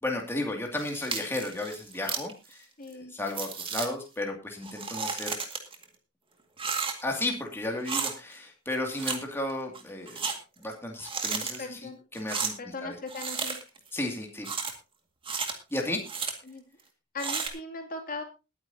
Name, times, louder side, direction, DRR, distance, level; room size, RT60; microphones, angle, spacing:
voice 1, 0.0-5.4 7.0-10.2 10.6-13.0 13.9-14.5 15.7-16.0, left 1 dB, 10° left, 1 dB, 2.4 m, -34 dB
sound 1, 0.8-2.3 2.9-3.0 3.3-3.9 4.6-5.8 6.6-7.2 7.8-8.1 8.9-9.2 9.5-10.3 11.0-11.6 12.1-12.5 13.1-13.8 14.4-14.7 15.2-15.5 16.0-16.3 17.2-17.5, right 5 dB, 25° right, 2.0 m, -33 dB
voice 2, 2.8-3.1 11.6-12.0 12.6-13.6 16.5-16.6 17.1-18.2, left 3 dB, 45° left, 4 dB, 2.6 m, -38 dB
21.0 x 9.5 x 2.8 m, 0.29 s
head